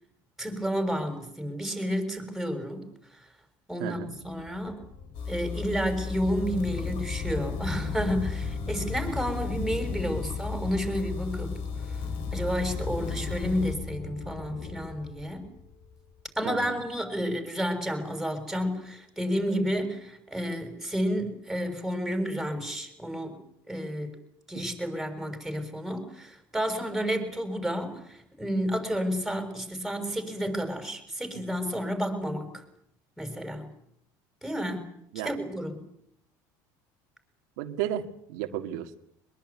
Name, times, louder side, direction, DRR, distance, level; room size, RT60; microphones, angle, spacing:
voice 1, 0.4-2.9 3.7-4.8 5.3-11.5 12.3-15.5 16.3-23.4 23.7-24.1 24.5-32.6 33.2-33.7 34.4-34.9 35.2-35.8, equal, ahead, 6 dB, 6.3 m, -31 dB
voice 2, 3.8-4.1 16.5-16.8 24.6-24.7 35.1-35.3 37.6-39.0, right 11 dB, 85° right, 5 dB, 1.9 m, -33 dB
sound 1, 4.2-16.3, left 5 dB, 45° left, 4.1 m, -38 dB
sound 2, 5.1-13.8, left 5 dB, 70° left, 3.8 m, -36 dB
23.5 x 22.0 x 9.7 m, 0.74 s
cardioid pair, 120°, 9 cm